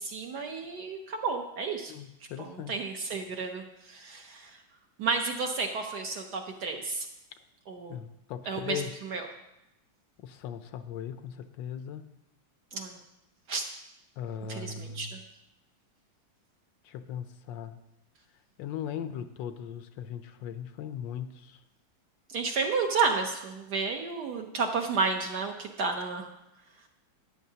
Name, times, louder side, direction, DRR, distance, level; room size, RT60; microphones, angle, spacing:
voice 1, 0.0-1.9 2.4-4.6 5.0-7.1 7.7-8.0 8.5-9.3 12.7-13.0 13.5-13.6 14.5-15.2 22.3-26.2, right 4 dB, 65° right, 3 dB, 1.1 m, -31 dB
voice 2, 1.9-2.7 7.9-8.9 10.2-12.0 14.2-15.1 16.8-17.8 18.6-21.6, left 8 dB, 75° left, 10 dB, 1.1 m, -38 dB
13.5 x 9.8 x 2.8 m, 0.90 s
omnidirectional pair, 2.3 m